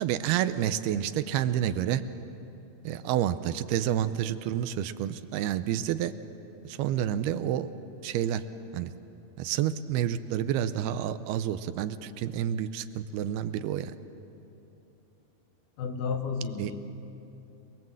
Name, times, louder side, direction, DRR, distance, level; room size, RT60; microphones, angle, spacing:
voice 1, 0.0-2.0 2.8-6.1 6.6-7.7 8.0-8.4 8.7-8.9 9.4-13.9 16.6-16.7, right 10 dB, 85° right, 12 dB, 2.7 m, -29 dB
voice 2, 15.8-17.1, left 5 dB, 65° left, 5 dB, 2.5 m, -33 dB
29.5 x 21.0 x 7.8 m, 2.9 s
omnidirectional pair, 4.5 m